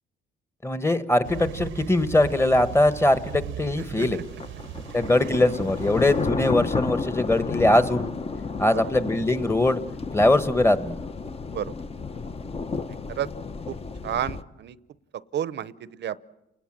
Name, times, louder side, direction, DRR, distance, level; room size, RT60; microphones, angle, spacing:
voice 1, 0.6-4.2 4.9-8.1 8.6-9.8 10.1-11.0, left 1 dB, 15° left, 12 dB, 1.3 m, -21 dB
sound 1, 1.2-6.3, right 11 dB, 85° right, 0.9 m, -38 dB
sound 2, 4.1-14.4, left 4 dB, 30° left, 0.9 m, -32 dB
voice 2, 12.9-13.3 13.7-13.8 14.0-14.8 15.1-16.2, right 10 dB, 60° right, 17 dB, 0.8 m, -31 dB
29.5 x 19.5 x 7.5 m, 0.94 s
cardioid pair, 90°, 20 cm